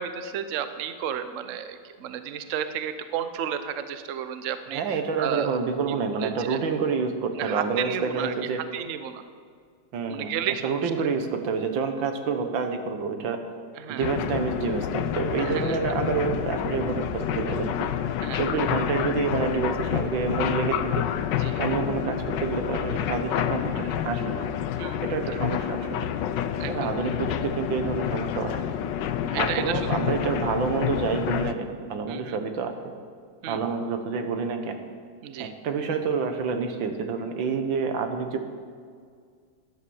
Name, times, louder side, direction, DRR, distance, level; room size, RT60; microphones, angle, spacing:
voice 1, 0.0-5.6 5.9-6.6 7.4-9.2 10.1-11.1 13.8-14.1 15.4-15.8 18.2-18.6 21.4-21.6 24.8-25.1 26.6-26.9 29.3-29.8 32.1-32.4 33.4-33.6 35.2-35.5, right 9 dB, 55° right, 10 dB, 0.9 m, -33 dB
voice 2, 4.7-8.6 9.9-10.3 10.6-13.4 13.9-17.9 18.4-21.0 21.6-24.4 25.0-26.1 26.7-28.5 29.3-32.9 33.4-34.8 35.4-38.5, right 5 dB, 85° right, 6 dB, 1.9 m, -28 dB
sound 1, 14.0-31.5, left 10 dB, 75° left, 1.3 m, -28 dB
14.0 x 10.5 x 7.1 m, 2.1 s
omnidirectional pair, 2.0 m